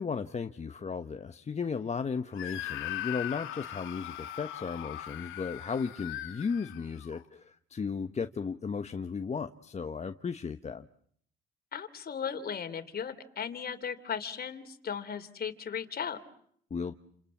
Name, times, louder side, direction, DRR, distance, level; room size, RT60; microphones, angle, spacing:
voice 1, 0.0-10.9 16.7-16.9, left 5 dB, 35° left, 1.1 m, -35 dB
Screaming, 2.4-7.2, left 13 dB, 90° left, 2.6 m, -40 dB
voice 2, 11.7-16.2, left 7 dB, 50° left, 3.3 m, -36 dB
29.5 x 27.5 x 7.3 m
cardioid pair, 90°, 20 cm